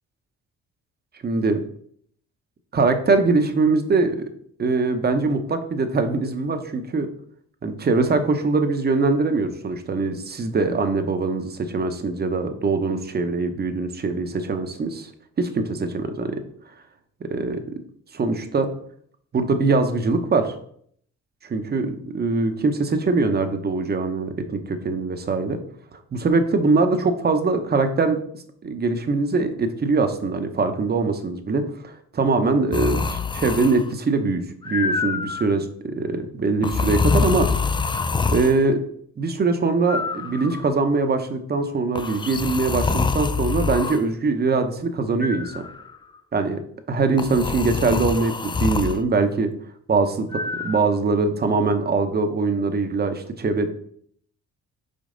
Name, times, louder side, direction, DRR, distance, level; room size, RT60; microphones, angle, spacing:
voice 1, 1.2-1.6 2.7-4.3 4.6-7.1 7.6-15.1 15.4-16.4 17.3-17.6 18.1-18.7 19.3-20.6 21.4-25.6 26.1-28.2 28.6-37.5 38.3-38.8 39.2-45.7 46.3-46.6 46.9-49.5 49.9-53.7, right 3 dB, 30° right, 7 dB, 0.8 m, -22 dB
sound 1, 32.7-33.9 34.6-35.5 36.6-38.6 39.9-40.8 42.0-44.0 45.2-45.9 47.2-49.0 50.3-50.8, left 4 dB, 15° left, 0.3 m, -25 dB
5.3 x 4.6 x 3.8 m, 0.63 s
cardioid pair, 90°, 30 cm